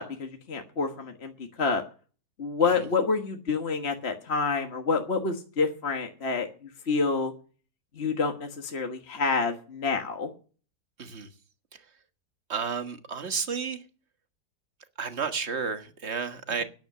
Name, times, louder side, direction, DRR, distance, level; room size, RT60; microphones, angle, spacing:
voice 1, 0.0-1.8 2.4-7.3 7.9-10.3, left 4 dB, 40° left, 1.6 m, -28 dB
voice 2, 11.0-11.3 11.7-11.8 12.5-13.8 15.0-16.6, right 6 dB, 40° right, 1.6 m, -31 dB
12.0 x 10.5 x 6.7 m
omnidirectional pair, 1.8 m